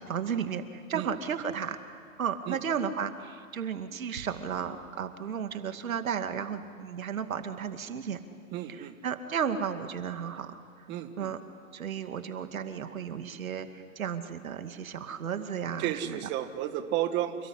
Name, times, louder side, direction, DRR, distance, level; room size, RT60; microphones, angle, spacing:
voice 1, 0.0-8.2 8.7-10.6 11.2-11.4 11.7-16.3, right 7 dB, 80° right, 8 dB, 2.3 m, -34 dB
voice 2, 8.5-8.9 10.9-11.3 15.8-17.5, right 12 dB, 25° right, 8 dB, 1.5 m, -32 dB
28.5 x 19.5 x 9.9 m, 2.2 s
hypercardioid pair, 140°, 41 cm